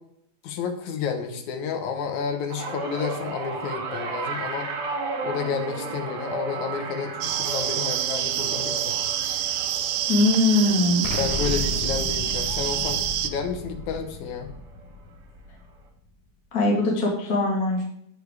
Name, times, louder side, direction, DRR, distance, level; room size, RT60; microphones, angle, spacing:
voice 1, 0.4-4.7 5.2-9.0 10.6-10.7 11.2-14.5, left 6 dB, 70° left, 6 dB, 2.3 m, -31 dB
sound 1, 2.5-12.9 13.3-13.7 14.8-14.9, right 3 dB, 55° right, 1.9 m, -34 dB
sound 2, 7.2-13.3, right 11 dB, 85° right, 2.3 m, -27 dB
voice 2, 10.1-11.1 16.5-17.8, left 2 dB, 35° left, -1 dB, 1.6 m, -21 dB
Explosion, 11.0-15.9, left 2 dB, 90° left, 2.3 m, -34 dB
8.5 x 6.8 x 4.8 m, 0.74 s
omnidirectional pair, 3.7 m